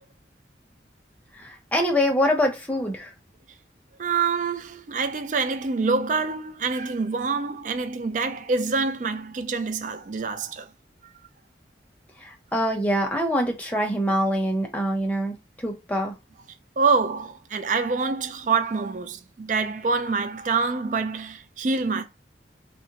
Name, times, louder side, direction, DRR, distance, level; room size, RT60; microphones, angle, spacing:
voice 1, 1.4-3.1 12.2-16.1, equal, 10° left, 0.7 m, -25 dB
voice 2, 4.0-10.7 16.8-22.0, right 4 dB, 45° right, 0.3 m, -26 dB
3.7 x 2.0 x 2.8 m
head